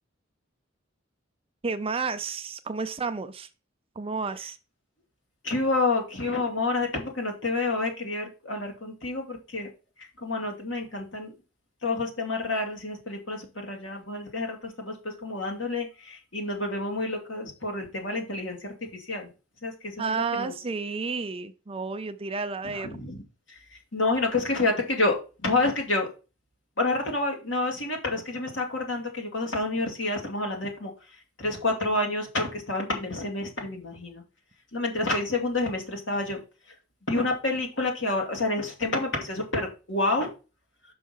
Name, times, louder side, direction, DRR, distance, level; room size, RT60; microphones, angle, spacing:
voice 1, 1.6-3.5 4.0-4.6 20.0-23.0, right 4 dB, 30° right, 0.5 m, -31 dB
voice 2, 5.4-9.7 10.0-11.3 11.8-19.3 19.6-20.5 22.6-23.2 23.9-26.1 26.8-30.9 31.4-34.2 34.7-36.4 37.1-40.3, left 2 dB, 65° left, 2.2 m, -29 dB
5.6 x 5.5 x 5.5 m
head